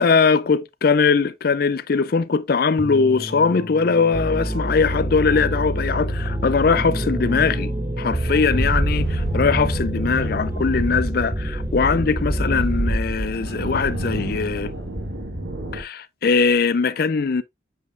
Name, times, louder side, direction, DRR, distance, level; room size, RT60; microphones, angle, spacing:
voice 1, 0.0-7.7 8.0-14.7 15.7-17.4, left 5 dB, 50° left, 0.4 m, -20 dB
sound 1, 2.8-10.9, equal, 65° right, 3.6 m, -32 dB
sound 2, 4.1-13.0, right 1 dB, 10° right, 0.4 m, -27 dB
sound 3, 8.5-15.8, right 1 dB, 85° right, 2.4 m, -27 dB
8.5 x 5.2 x 2.5 m
head